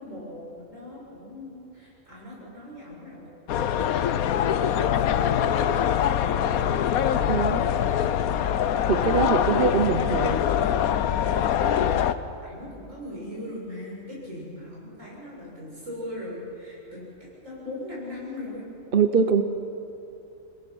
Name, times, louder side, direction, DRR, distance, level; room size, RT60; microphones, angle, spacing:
voice 1, 0.0-6.9 8.9-10.1 11.6-12.0 12.4-17.0 17.4-18.7, left 1 dB, 65° right, -5 dB, 7.7 m, -40 dB
sound 1, 3.5-12.1, left 9 dB, 90° left, 1.2 m, -23 dB
sound 2, 3.5-8.5, left 2 dB, 30° left, 1.8 m, -41 dB
voice 2, 7.3-7.6 8.9-10.4 18.9-19.4, right 6 dB, 45° right, 8 dB, 0.9 m, -23 dB
26.5 x 21.5 x 6.2 m, 2.8 s
omnidirectional pair, 1.5 m